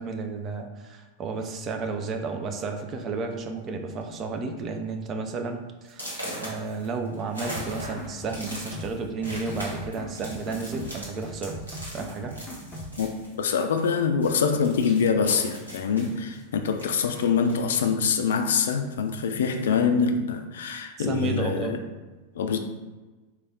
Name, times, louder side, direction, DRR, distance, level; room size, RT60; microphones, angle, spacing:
voice 1, 0.0-11.6 11.9-12.4 21.0-21.8, right 4 dB, 30° right, 4 dB, 0.4 m, -32 dB
sound 1, 1.4-1.7 2.5-2.6 3.0-3.3 3.6-4.0 4.4-4.5 5.0-5.1 5.9-13.9 14.2-17.9 18.3-19.3, equal, 85° right, 1.0 m, -41 dB
sound 2, 7.5-8.9 9.2-10.9 11.2-12.9, equal, 10° left, 0.7 m, -40 dB
voice 2, 13.4-21.8 22.3-22.6, left 6 dB, 60° left, 6 dB, 0.3 m, -24 dB
3.3 x 2.2 x 3.9 m, 1.2 s
figure-of-eight pair, 90°, 0 cm